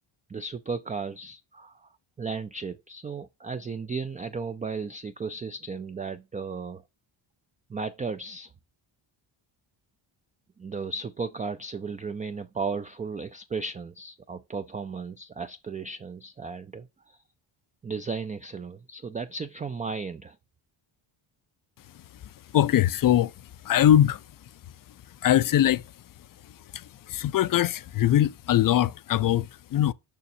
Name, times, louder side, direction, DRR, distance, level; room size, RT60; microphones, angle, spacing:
voice 1, 0.3-1.9 2.2-6.8 7.7-8.5 10.6-17.2 17.8-20.4, right 4 dB, 20° right, 0.3 m, -35 dB
voice 2, 22.2-24.2 25.2-25.8 26.4-29.9, left 11 dB, 45° left, 0.5 m, -22 dB
6.9 x 5.8 x 2.7 m
cardioid pair, 105°, 48 cm